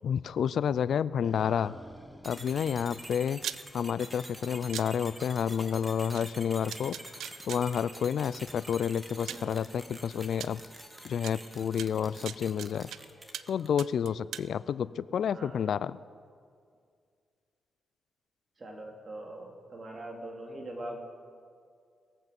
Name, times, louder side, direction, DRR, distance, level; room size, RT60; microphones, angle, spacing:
voice 1, 0.0-1.7 2.2-3.4 3.7-7.0 7.5-10.6 11.0-12.9 13.5-16.0, left 8 dB, 70° left, 18 dB, 0.3 m, -30 dB
sound 1, 1.0-4.1, equal, ahead, 0.8 m, -52 dB
voice 2, 1.2-1.8 9.3-9.7 15.3-15.8 18.6-21.0, right 1 dB, 45° right, 1 dB, 2.9 m, -43 dB
sound 2, 2.2-13.8, right 1 dB, 20° right, 1.9 m, -47 dB
sound 3, 3.4-3.6 4.7-4.9 6.1-6.2 6.7-7.6 8.7-8.8 9.3-9.5 10.4-10.5 11.2-11.3 11.8-13.0 13.3-13.5 13.8-14.5, right 10 dB, 80° right, 0.3 m, -38 dB
20.5 x 8.3 x 5.3 m, 2.2 s
supercardioid pair, 55°, 0 cm